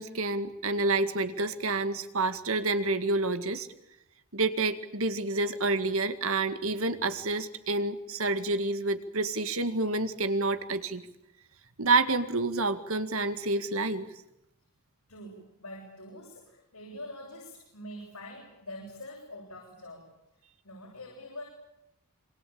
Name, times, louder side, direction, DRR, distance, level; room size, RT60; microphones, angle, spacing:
voice 1, 0.0-3.7 4.3-11.0 11.8-14.1, right 3 dB, 65° right, 9 dB, 2.0 m, -28 dB
voice 2, 15.1-20.1 20.6-21.4, left 1 dB, 80° left, -1 dB, 7.9 m, -44 dB
27.5 x 25.0 x 8.7 m, 0.84 s
head